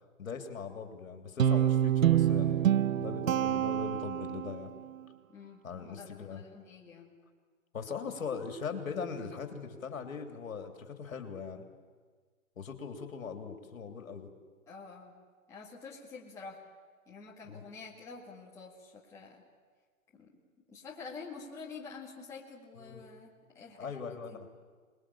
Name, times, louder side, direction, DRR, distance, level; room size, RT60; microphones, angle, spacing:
voice 1, 0.2-4.7 5.6-6.4 7.7-11.7 12.6-14.3 17.4-17.6 22.8-23.0 23.8-24.5, left 5 dB, 70° left, 5 dB, 3.2 m, -40 dB
Guitar, 1.4-4.7, right 11 dB, 70° right, 0.7 m, -27 dB
voice 2, 5.3-7.2 14.7-15.1 15.5-16.6 17.1-19.4 20.1-20.3 20.7-24.4, left 4 dB, 5° left, -5 dB, 2.0 m, -48 dB
27.0 x 20.5 x 8.7 m, 1.5 s
hypercardioid pair, 165°, 42 cm